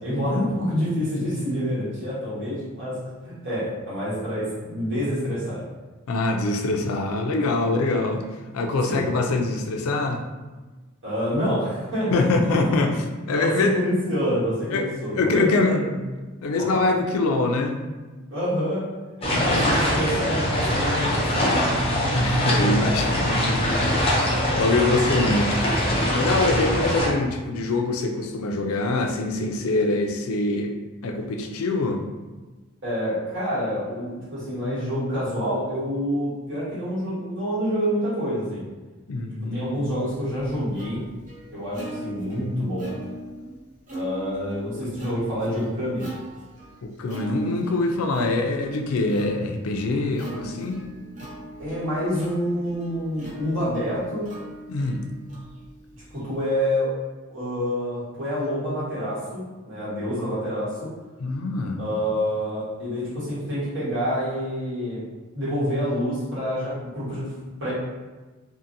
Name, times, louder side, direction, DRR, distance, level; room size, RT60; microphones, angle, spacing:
voice 1, 0.0-3.0 3.2-5.6 8.9-9.0 11.0-12.2 13.3-15.9 16.7-16.8 18.3-18.8 19.2-21.5 32.8-38.6 39.5-41.0 41.5-42.9 43.9-46.1 51.6-54.3 56.1-56.9 57.3-60.8 61.8-65.0 65.3-67.3 67.6-67.7, equal, 60° right, -10 dB, 1.5 m, -27 dB
voice 2, 6.1-8.2 8.5-10.2 12.1-13.8 14.7-14.9 15.1-15.8 16.4-17.8 19.3-19.7 22.1-23.9 24.5-25.6 26.1-30.7 31.0-32.0 39.1-39.9 46.8-50.8 54.7-55.1 61.2-61.8, left 2 dB, 85° left, 4 dB, 0.4 m, -24 dB
sound 1, 19.2-27.1, equal, 30° left, 0.6 m, -22 dB
Plucked string instrument, 39.9-56.6, right 1 dB, 35° right, 0.8 m, -41 dB
2.7 x 2.5 x 2.6 m, 1.3 s
head